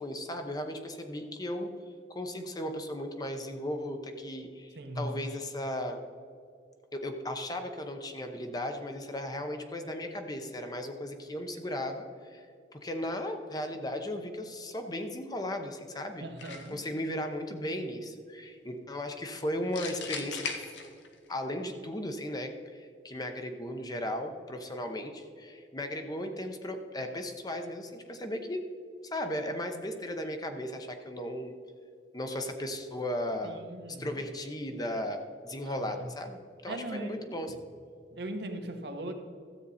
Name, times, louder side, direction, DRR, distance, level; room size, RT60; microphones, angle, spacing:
voice 1, 0.0-1.7 2.1-6.0 6.9-12.5 12.7-16.2 16.7-20.6 21.3-28.6 29.0-31.6 32.1-33.6 34.0-35.2 35.4-37.5, left 1 dB, 20° left, 5 dB, 0.8 m, -36 dB
voice 2, 4.8-5.2 16.2-16.9 33.4-34.1 35.7-36.1 36.7-37.1 38.1-39.1, right 1 dB, 65° right, 5 dB, 1.1 m, -39 dB
sound 1, 16.4-16.9 19.7-21.3, left 5 dB, 85° left, 1.2 m, -38 dB
13.0 x 8.1 x 4.2 m, 2.3 s
head